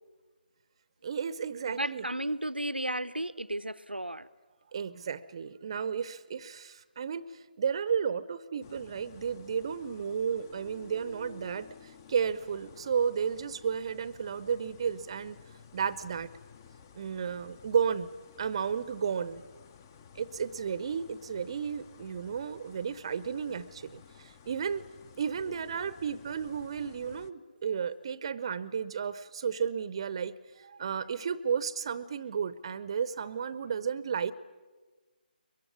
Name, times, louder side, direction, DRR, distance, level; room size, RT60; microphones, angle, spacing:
voice 1, 1.0-2.0 4.7-15.4 15.7-16.3 16.9-18.1 18.4-19.4 20.2-24.8 25.2-34.3, right 7 dB, 35° right, 16 dB, 0.7 m, -33 dB
voice 2, 1.7-4.3, right 1 dB, 90° right, 14 dB, 0.8 m, -34 dB
sound 1, 8.6-27.3, left 6 dB, 25° left, 0.8 m, -53 dB
23.0 x 22.5 x 9.6 m, 1.3 s
figure-of-eight pair, 150°, 5 cm